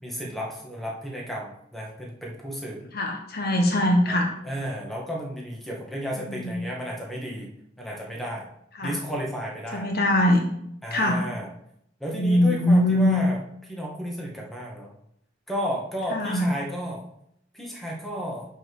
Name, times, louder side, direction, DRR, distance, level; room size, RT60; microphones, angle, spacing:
voice 1, 0.0-2.8 4.1-4.2 4.4-7.5 7.8-8.5 8.8-9.9 10.8-11.5 12.0-13.4 13.7-14.9 15.5-17.0 17.5-18.5, equal, ahead, -3 dB, 1.9 m, -33 dB
voice 2, 2.9-4.3 6.3-6.7 8.8-8.9 9.7-10.4 10.9-11.2 12.1-13.2 16.1-16.5, left 1 dB, 55° left, 2 dB, 1.5 m, -22 dB
6.6 x 5.9 x 6.2 m, 0.74 s
head